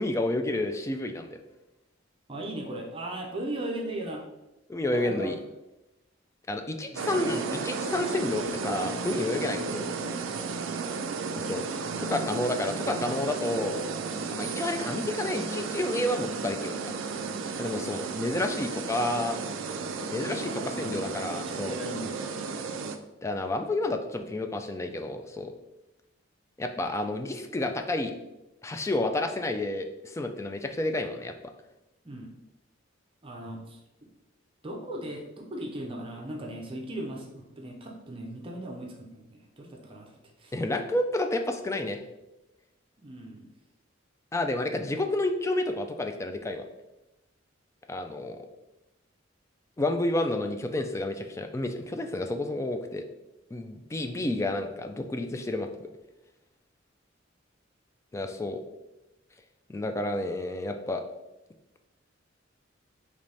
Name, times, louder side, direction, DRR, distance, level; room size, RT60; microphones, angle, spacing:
voice 1, 0.0-1.4 4.7-5.4 6.5-9.8 11.3-11.6 12.0-13.8 14.3-16.9 17.6-19.4 20.1-21.7 23.2-25.5 26.6-28.1 28.6-31.3 40.5-42.0 44.3-46.6 47.9-48.4 49.8-53.0 53.5-55.7 58.1-58.6 59.7-61.0, left 2 dB, 15° left, 6 dB, 0.3 m, -30 dB
voice 2, 2.3-4.2 4.9-5.4 6.9-7.2 20.1-22.3 32.0-32.3 33.2-33.8 34.6-40.5 43.0-43.5, right 1 dB, 30° right, 0 dB, 0.6 m, -38 dB
sound 1, 6.9-23.0, right 4 dB, 80° right, 0.4 m, -33 dB
3.9 x 3.1 x 3.3 m, 0.98 s
head